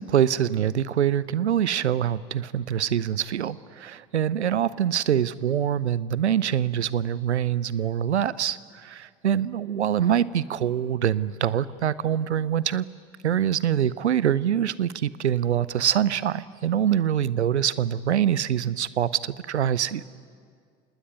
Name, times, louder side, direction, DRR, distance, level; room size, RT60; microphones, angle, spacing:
voice 1, 0.0-12.9 13.2-20.0, right 10 dB, 80° right, 19 dB, 0.7 m, -24 dB
26.5 x 19.5 x 9.6 m, 2.1 s
figure-of-eight pair, 60°, 33 cm